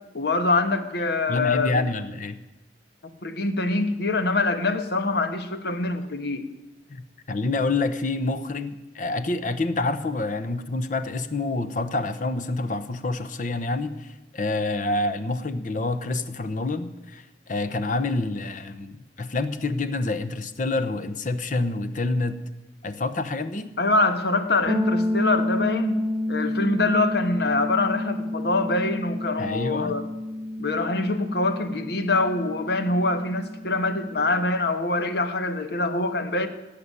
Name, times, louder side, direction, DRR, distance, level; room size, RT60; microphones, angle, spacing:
voice 1, 0.1-1.8 3.2-6.5 23.8-26.0 26.3-30.0 30.6-36.5, left 2 dB, 65° left, 8 dB, 1.2 m, -24 dB
voice 2, 1.3-2.4 6.9-22.4 22.8-23.7 29.4-30.0, left 2 dB, 45° left, 11 dB, 0.9 m, -27 dB
sound 1, 24.7-34.4, left 1 dB, 15° right, 0.6 m, -30 dB
17.5 x 6.8 x 9.7 m, 1.0 s
head